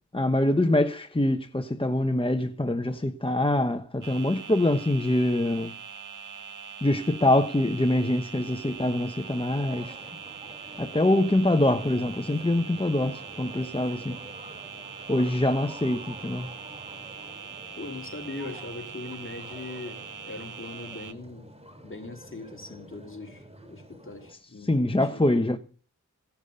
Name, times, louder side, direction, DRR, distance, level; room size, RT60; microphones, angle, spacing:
voice 1, 0.1-5.7 6.8-9.9 10.8-14.2 15.1-16.5 24.6-25.6, left 1 dB, 15° left, 1.0 m, -24 dB
sound 1, 4.0-21.1, right 6 dB, 80° right, 1.1 m, -42 dB
sound 2, 8.5-24.3, right 1 dB, 20° right, 3.7 m, -48 dB
voice 2, 17.8-21.5 21.8-23.4 23.7-25.4, left 3 dB, 40° left, 3.2 m, -40 dB
17.0 x 12.0 x 5.6 m
wide cardioid pair, 60°, 31 cm